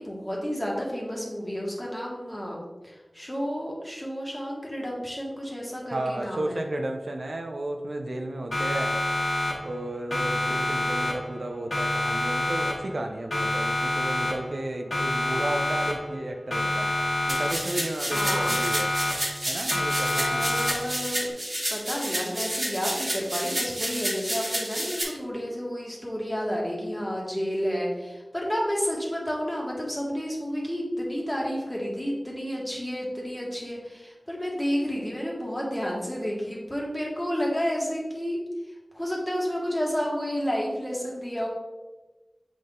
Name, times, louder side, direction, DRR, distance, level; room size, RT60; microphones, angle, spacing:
voice 1, 0.0-6.6 18.1-18.6 20.1-21.3 21.7-38.4 38.9-41.5, equal, 10° left, -3 dB, 1.8 m, -31 dB
voice 2, 5.9-9.0 9.6-17.0 17.3-18.9 19.5-20.6, right 1 dB, 75° right, 3 dB, 0.6 m, -33 dB
Siren, 8.5-9.8 10.1-11.4 11.7-13.0 13.3-14.6 14.9-16.2 16.5-17.8 18.1-19.4 19.7-21.0, left 1 dB, 70° left, 1.7 m, -27 dB
sound 1, 17.3-25.0, right 1 dB, 40° right, 1.6 m, -30 dB
7.6 x 3.8 x 3.7 m, 1.2 s
wide cardioid pair, 65°, 0 cm